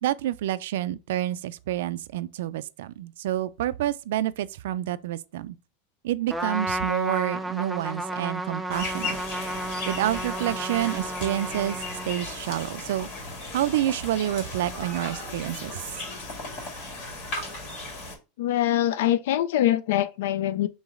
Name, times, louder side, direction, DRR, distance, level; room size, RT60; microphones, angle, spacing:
voice 1, 0.0-5.6 6.0-9.2 9.9-11.8 12.1-13.1 13.5-15.8, right 13 dB, 80° right, 0.3 m, -28 dB
Trumpet, 6.3-12.5, right 1 dB, 5° right, 0.4 m, -32 dB
sound 1, 8.7-18.2, left 2 dB, 55° left, 1.8 m, -36 dB
voice 2, 18.4-20.7, left 12 dB, 80° left, 0.3 m, -23 dB
3.8 x 3.1 x 3.5 m
supercardioid pair, 150°, 0 cm